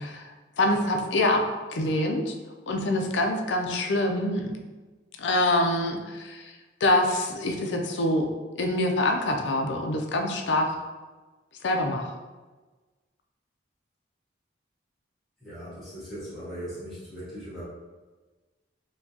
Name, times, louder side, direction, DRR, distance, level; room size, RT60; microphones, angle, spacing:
voice 1, 0.0-1.4 1.7-2.3 2.7-4.5 5.2-8.3 8.6-10.8 11.6-12.1, left 1 dB, 70° left, 3 dB, 0.5 m, -25 dB
voice 2, 15.4-17.6, equal, ahead, -13 dB, 1.4 m, -39 dB
4.4 x 2.2 x 2.7 m, 1.3 s
head